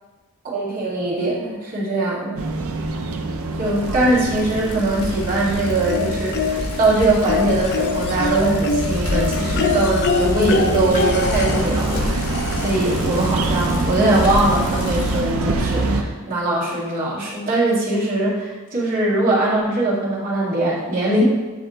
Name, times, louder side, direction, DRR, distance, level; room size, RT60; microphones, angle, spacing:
voice 1, 0.4-2.4 3.6-21.2, right 2 dB, 40° right, -7 dB, 2.0 m, -21 dB
sound 1, 2.4-16.0, right 3 dB, 70° right, 0.6 m, -26 dB
Bicycle, 3.6-15.3, left 1 dB, 85° left, 0.9 m, -30 dB
sound 2, 5.9-6.8 7.3-13.0 14.2-14.3 14.6-14.7, left 5 dB, 50° left, 0.4 m, -25 dB
8.2 x 3.4 x 3.8 m, 1.3 s
head